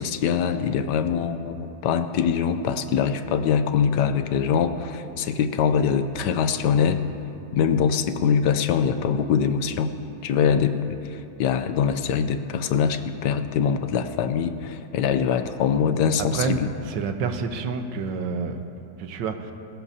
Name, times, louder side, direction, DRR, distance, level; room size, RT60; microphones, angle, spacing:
voice 1, 0.0-7.0 7.5-9.9 10.2-16.7, left 7 dB, 75° left, 10 dB, 1.2 m, -23 dB
voice 2, 16.3-19.5, right 5 dB, 85° right, 7 dB, 1.5 m, -29 dB
21.0 x 14.5 x 2.8 m, 2.7 s
omnidirectional pair, 1.9 m